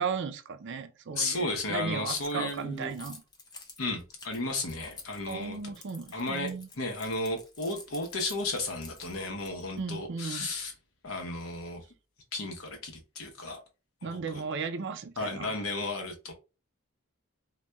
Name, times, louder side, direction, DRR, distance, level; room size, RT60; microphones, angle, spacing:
voice 1, 0.0-3.2 5.3-6.7 9.8-10.5 14.0-15.5, right 5 dB, 55° right, 0.4 m, -35 dB
voice 2, 1.1-2.9 3.8-5.7 6.1-10.7 11.0-11.8 12.3-13.6 14.1-14.4 15.2-16.3, left 2 dB, 75° left, 0.8 m, -34 dB
Keys jangling, 2.1-9.8, left 3 dB, 20° left, 0.6 m, -50 dB
4.0 x 2.2 x 2.2 m
head